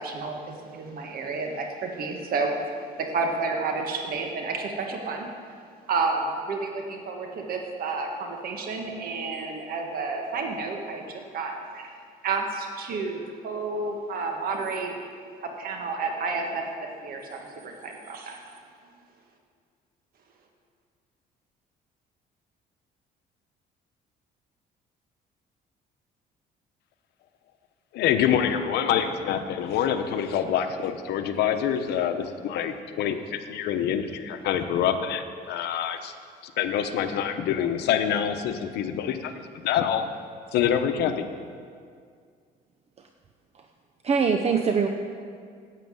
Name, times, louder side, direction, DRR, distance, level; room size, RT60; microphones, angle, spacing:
voice 1, 0.0-2.5 3.0-5.3 5.9-11.9 12.2-14.9 15.4-16.6 17.0-18.4, right 4 dB, 60° right, 2 dB, 1.6 m, -30 dB
voice 2, 27.9-36.1 36.4-40.1 40.5-41.3, left 9 dB, 80° left, 8 dB, 0.9 m, -26 dB
voice 3, 44.0-44.9, right 5 dB, 40° right, 5 dB, 0.7 m, -23 dB
9.3 x 8.4 x 7.8 m, 2.1 s
cardioid pair, 110°, 17 cm